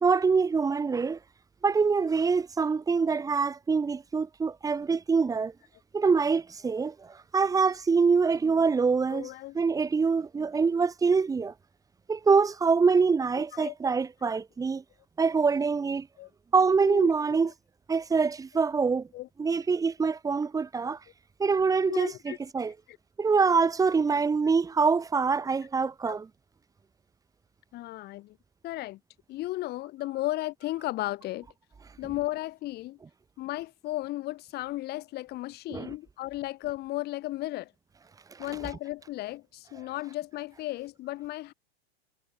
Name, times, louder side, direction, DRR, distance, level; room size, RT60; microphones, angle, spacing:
voice 1, 0.0-1.2 1.6-5.5 5.9-9.3 9.5-11.5 12.1-14.8 15.2-16.1 16.5-17.5 17.9-19.1 19.4-21.0 21.4-22.7 23.2-26.3 35.7-35.9, right 5 dB, 10° right, 2.6 m, -25 dB
voice 2, 9.1-9.6 13.5-13.8 16.2-16.3 16.8-17.1 19.1-19.3 21.9-22.4 22.9-23.0 26.1-26.2 27.7-28.4 28.6-29.0 29.3-31.5 32.0-33.0 33.4-37.7 38.4-41.5, left 17 dB, 30° left, 3.5 m, -35 dB
hypercardioid pair, 140°, 30 cm